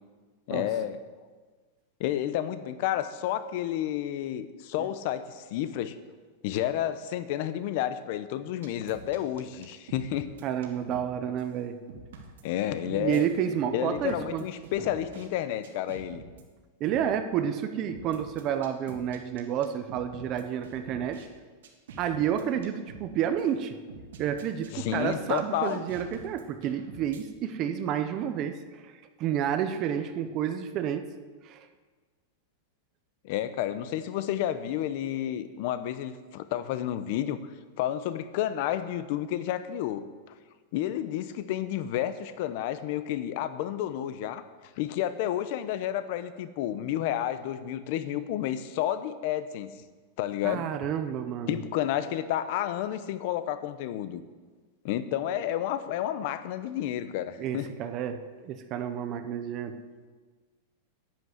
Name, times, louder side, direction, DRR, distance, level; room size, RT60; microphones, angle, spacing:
voice 1, 0.5-1.0 2.0-6.0 6.4-10.3 12.4-13.3 13.7-16.2 24.7-25.8 33.2-37.4 37.8-40.0 40.7-44.4 44.8-49.7 50.2-50.7 51.5-54.2 54.8-57.7, left 11 dB, 45° left, 13 dB, 0.8 m, -30 dB
sound 1, 8.6-11.1 11.4-11.5 11.9-13.2 13.9-15.3 15.6-16.4 16.9-17.1 17.9-21.3 21.6-23.1 23.4-23.5 23.9-27.2, right 4 dB, 90° right, 2.7 m, -46 dB
voice 2, 10.4-11.8 12.8-14.4 16.8-21.3 22.0-23.8 24.2-28.9 29.2-31.1 31.4-31.7 50.4-51.6 57.4-59.8, right 9 dB, 25° right, 9 dB, 0.7 m, -30 dB
10.5 x 10.5 x 8.0 m, 1.4 s
supercardioid pair, 175°, 0 cm